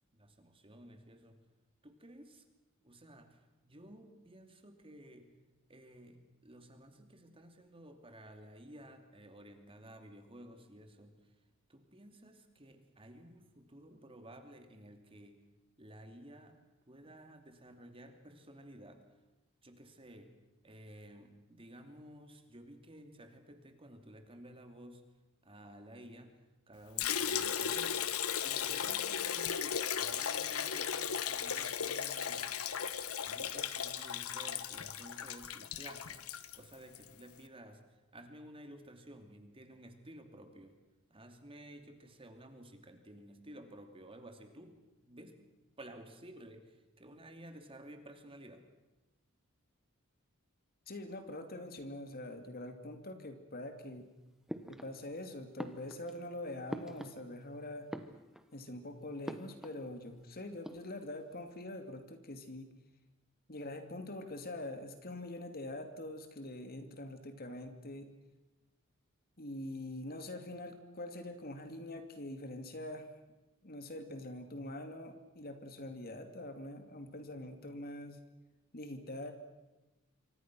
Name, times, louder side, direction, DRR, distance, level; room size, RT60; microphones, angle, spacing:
voice 1, 0.1-1.4 1.8-2.4 2.8-5.3 5.7-11.3 11.7-15.4 15.8-16.6 16.9-19.0 19.6-20.4 20.6-25.0 25.4-26.4 26.7-28.1 28.4-32.5 33.2-40.8 41.1-45.4 45.8-48.7, right 1 dB, 25° right, 6 dB, 2.7 m, -54 dB
Liquid, 27.0-37.1, left 8 dB, 85° left, 1.3 m, -36 dB
voice 2, 50.9-54.1 54.7-57.9 58.5-62.7 63.5-68.1 69.4-73.1 73.6-78.2 78.7-79.3, left 1 dB, 45° left, 7 dB, 2.5 m, -44 dB
sound 1, 54.5-55.2 55.6-57.5 57.8-58.6 59.2-59.9 60.1-60.2 60.5-61.2, equal, ahead, 1.3 m, -45 dB
27.5 x 24.5 x 6.2 m, 1.1 s
head